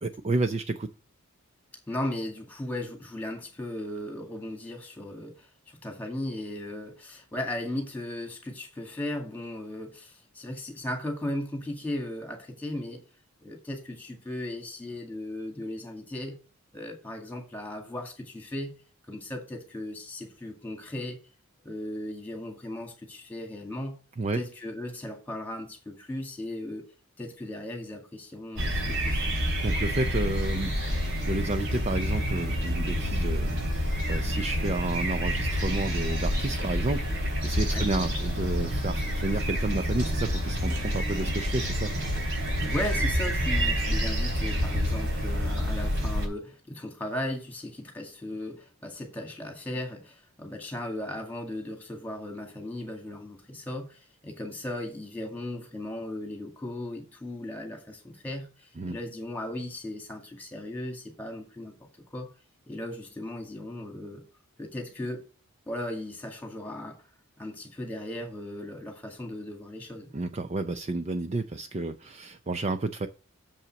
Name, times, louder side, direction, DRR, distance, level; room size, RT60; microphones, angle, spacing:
voice 1, 0.0-0.9 24.2-24.4 29.6-42.2 58.8-59.0 70.1-73.1, right 2 dB, 30° right, 0.4 m, -31 dB
voice 2, 1.9-13.0 13.4-16.4 16.7-18.8 19.1-21.2 21.6-24.0 24.3-26.9 27.2-29.2 37.6-37.9 42.7-61.8 62.1-62.3 62.7-64.2 64.6-65.2 65.7-67.0 67.4-70.1, left 1 dB, 10° left, 2.0 m, -36 dB
sound 1, 28.6-46.3, equal, 55° right, 3.6 m, -28 dB
7.1 x 5.5 x 5.8 m
head